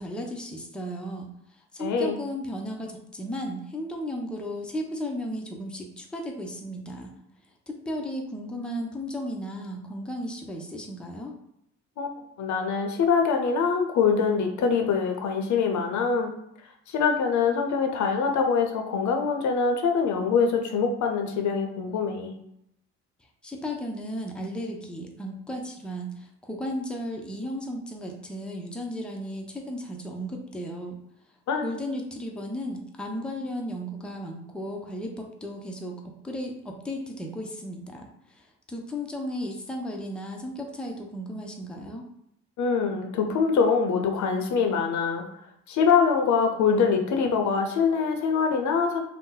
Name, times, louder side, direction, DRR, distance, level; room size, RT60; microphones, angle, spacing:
voice 1, 0.0-7.1 7.7-11.3 23.4-31.0 31.6-35.9 36.2-38.1 38.4-42.0, equal, 5° left, 0 dB, 0.5 m, -35 dB
voice 2, 1.8-2.2 12.0-12.1 12.4-16.3 16.9-22.3 31.5-31.7 42.6-45.3 45.7-49.0, left 5 dB, 70° left, 4 dB, 0.6 m, -24 dB
2.7 x 2.1 x 3.8 m, 0.77 s
cardioid pair, 90°, 30 cm